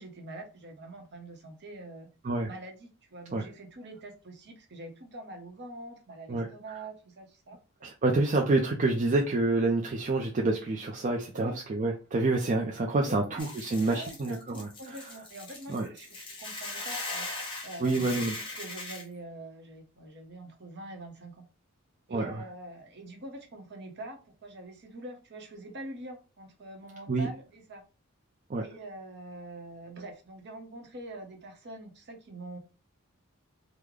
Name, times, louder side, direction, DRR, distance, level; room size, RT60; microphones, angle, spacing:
voice 1, 0.0-2.1 2.5-7.6 11.3-11.6 13.0-13.4 13.9-17.3 17.6-18.2 18.6-21.5 22.1-27.8 28.6-32.6, right 1 dB, 50° right, 4 dB, 0.8 m, -44 dB
voice 2, 7.8-14.7 15.7-15.9 17.8-18.3 22.1-22.4 27.1-27.3 28.5-28.6, right 2 dB, 35° right, 1 dB, 0.4 m, -27 dB
Hiss / Boiling, 13.4-19.0, left 2 dB, 25° left, 1.0 m, -39 dB
3.6 x 2.1 x 3.1 m, 0.33 s
head